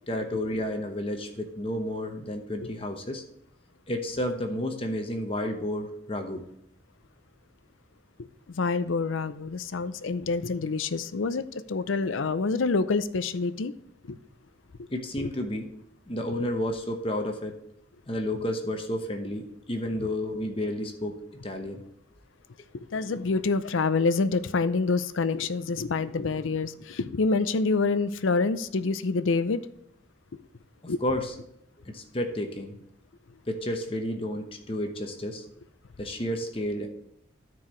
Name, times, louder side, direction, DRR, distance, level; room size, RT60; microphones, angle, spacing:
voice 1, 0.1-3.2 3.9-6.4 14.9-15.7 16.1-17.5 18.1-21.2 21.4-21.8 30.8-31.3 31.8-32.8 33.5-35.4 36.0-36.9, left 1 dB, 30° left, 4 dB, 0.9 m, -31 dB
voice 2, 8.5-13.7 14.0-14.2 14.8-14.9 15.2-15.3 20.0-20.1 22.9-29.6 30.9-31.0, left 4 dB, 85° left, 14 dB, 0.5 m, -27 dB
13.5 x 4.7 x 3.1 m, 0.76 s
head